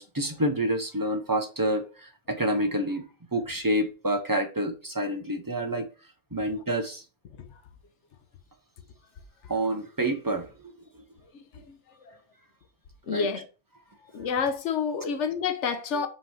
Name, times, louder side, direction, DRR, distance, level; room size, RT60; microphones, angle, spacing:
voice 1, 0.0-5.9 6.3-7.0 9.5-10.7 13.1-13.4, right 1 dB, 30° right, 0.4 m, -28 dB
voice 2, 11.3-12.2 13.1-13.5 14.1-16.1, left 6 dB, 65° left, 1.0 m, -29 dB
5.6 x 3.0 x 5.6 m
omnidirectional pair, 1.4 m